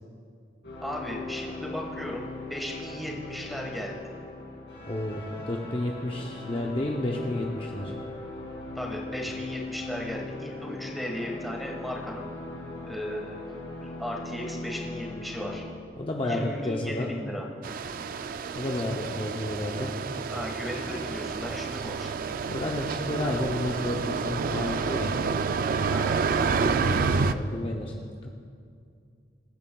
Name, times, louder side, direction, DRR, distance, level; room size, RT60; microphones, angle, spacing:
sound 1, 0.6-15.6, left 2 dB, 75° left, 2.5 m, -39 dB
voice 1, 0.8-4.0 8.7-12.3 12.8-13.3 13.8-15.6 16.2-17.5 20.3-22.1 25.9-26.2, equal, ahead, -2 dB, 1.5 m, -36 dB
voice 2, 4.9-7.9 16.0-17.1 18.6-19.9 22.5-25.1 26.5-27.9 28.2-28.3, left 1 dB, 30° left, 0 dB, 0.7 m, -31 dB
sound 2, 17.6-27.3, right 5 dB, 50° right, 0.4 m, -29 dB
22.0 x 9.1 x 2.3 m, 2.3 s
head